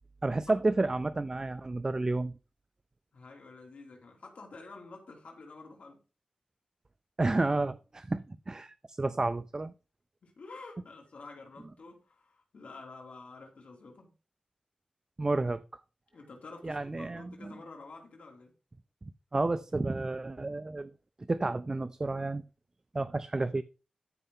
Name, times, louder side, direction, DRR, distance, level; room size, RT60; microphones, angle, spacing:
voice 1, 0.2-2.3 7.2-9.7 15.2-15.8 16.6-17.5 19.0-20.9 21.3-22.4 22.9-23.6, right 2 dB, 25° right, 0.4 m, -31 dB
voice 2, 3.1-6.0 10.2-14.1 16.1-18.5, left 3 dB, 75° left, 2.8 m, -49 dB
13.5 x 5.4 x 3.7 m
wide cardioid pair, 110°, 2 cm